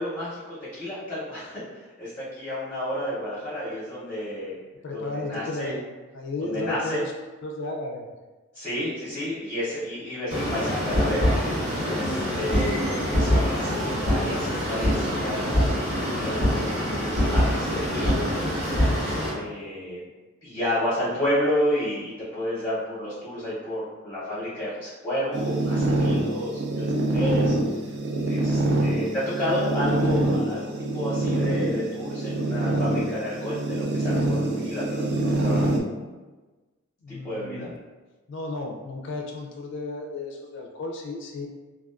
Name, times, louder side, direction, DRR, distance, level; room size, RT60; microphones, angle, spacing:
voice 1, 0.0-4.6 4.9-5.7 6.4-7.0 8.5-11.3 11.8-18.6 19.3-20.0 20.4-27.5 28.2-35.7 37.2-37.7, left 1 dB, 15° left, -11 dB, 0.7 m, -31 dB
voice 2, 4.8-5.8 6.1-7.1 7.4-8.1 37.0-37.7 38.3-41.5, left 2 dB, 60° left, 1 dB, 0.3 m, -33 dB
sound 1, 10.3-19.3, equal, 80° right, 1.3 m, -24 dB
sound 2, 25.3-35.8, right 2 dB, 50° right, 0.3 m, -25 dB
2.3 x 2.3 x 2.3 m, 1.2 s
head